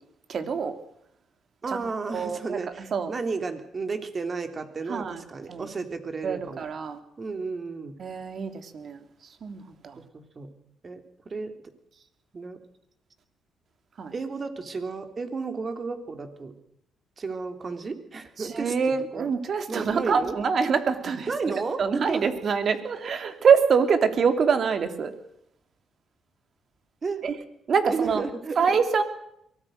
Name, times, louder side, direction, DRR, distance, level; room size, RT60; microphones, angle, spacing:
voice 1, 0.3-0.8 1.7-1.8 2.1-2.6 2.9-3.1 4.9-5.2 5.5-5.7 6.2-7.0 8.0-9.0 9.4-10.0 14.0-14.1 18.4-21.3 21.8-25.1 27.2-27.3 27.7-28.3 28.6-29.0, right 6 dB, 55° right, 8 dB, 2.9 m, -25 dB
voice 2, 1.6-6.7 7.2-8.0 10.0-10.5 10.8-11.5 12.3-12.6 14.1-16.5 17.2-19.3 19.7-20.4 21.3-22.3 27.0-27.3 27.9-28.8, right 4 dB, 35° right, 7 dB, 3.4 m, -33 dB
23.5 x 18.5 x 6.5 m, 0.75 s
cardioid pair, 90°, 0 cm